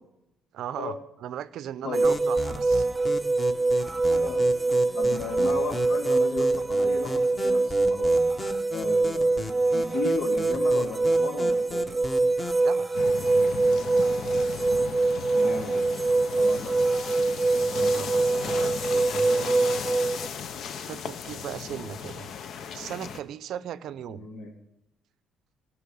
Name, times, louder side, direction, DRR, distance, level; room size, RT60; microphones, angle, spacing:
voice 1, 0.5-2.9 12.6-13.0 17.5-19.7 20.9-22.3 22.7-24.3, right 10 dB, 65° right, 16 dB, 0.6 m, -38 dB
sound 1, 1.9-20.3, right 3 dB, 15° right, 0.4 m, -24 dB
sound 2, 2.0-12.7, left 2 dB, 20° left, 1.1 m, -37 dB
voice 2, 4.1-4.4 4.9-8.1 8.7-11.9 15.3-15.9 16.4-16.8 17.7-18.0 24.1-24.5, left 4 dB, 75° left, 2 dB, 2.7 m, -35 dB
sound 3, 12.9-23.2, left 7 dB, 55° left, 0.7 m, -36 dB
15.5 x 6.2 x 9.8 m, 0.85 s
cardioid pair, 145°, 0 cm